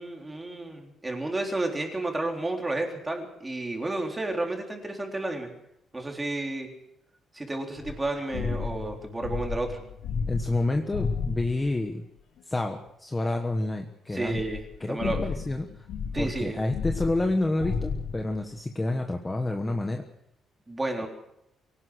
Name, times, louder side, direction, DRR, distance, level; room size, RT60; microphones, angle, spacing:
voice 1, 0.0-5.5 5.9-6.7 7.3-9.8 14.1-14.6 14.9-15.2 16.1-16.6 20.7-21.1, right 2 dB, 10° right, 2 dB, 3.8 m, -31 dB
sound 1, 7.8-11.7 12.4-12.5 14.3-18.4, left 5 dB, 85° left, 3.7 m, -33 dB
voice 2, 10.3-12.0 12.4-14.4 14.8-15.9 16.2-20.0, left 2 dB, 10° left, 4 dB, 1.4 m, -29 dB
24.0 x 17.5 x 6.4 m, 0.80 s
cardioid pair, 180°, 0 cm